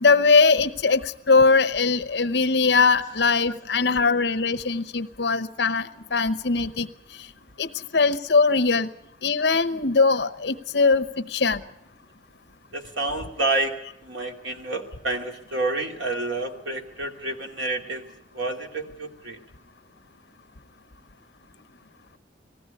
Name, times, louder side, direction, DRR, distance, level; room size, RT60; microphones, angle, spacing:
voice 1, 0.0-6.9 7.6-8.9 9.2-11.6, left 4 dB, 65° left, 9 dB, 0.9 m, -21 dB
voice 2, 12.7-13.7 14.0-18.0 18.3-19.4, right 2 dB, 90° right, 3 dB, 2.7 m, -29 dB
19.5 x 15.5 x 9.8 m, 0.77 s
head